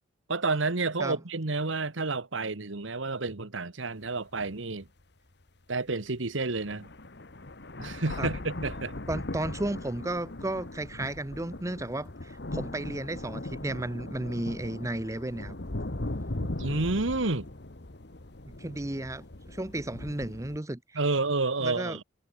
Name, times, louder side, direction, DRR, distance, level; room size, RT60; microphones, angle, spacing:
voice 1, 0.3-4.9 5.7-6.9 7.8-8.9 16.6-17.5 20.9-22.0, right 3 dB, 85° right, 1.5 m, -30 dB
sound 1, 4.1-4.2 4.8-4.9 6.2-6.3 6.6-20.6, left 1 dB, 60° left, 1.6 m, -39 dB
voice 2, 9.1-15.5 18.6-21.0 21.6-22.0, right 1 dB, 15° right, 0.8 m, -34 dB
head